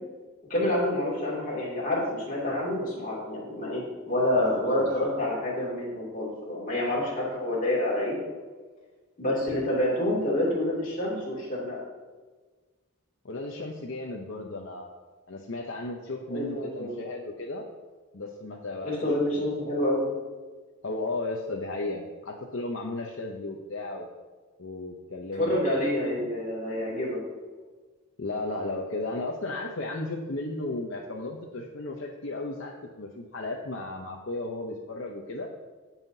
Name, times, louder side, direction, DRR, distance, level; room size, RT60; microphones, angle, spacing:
voice 1, 0.5-8.2 9.2-11.8 16.3-17.0 18.8-20.1 25.4-27.2, left 1 dB, 40° left, -5 dB, 2.7 m, -28 dB
voice 2, 4.4-4.9 13.2-14.9 15.3-17.6 18.1-18.9 19.3-19.6 20.8-24.1 24.6-25.9 26.2-26.3 28.2-35.5, left 2 dB, 65° left, 0 dB, 0.7 m, -35 dB
16.0 x 5.7 x 2.8 m, 1.4 s
head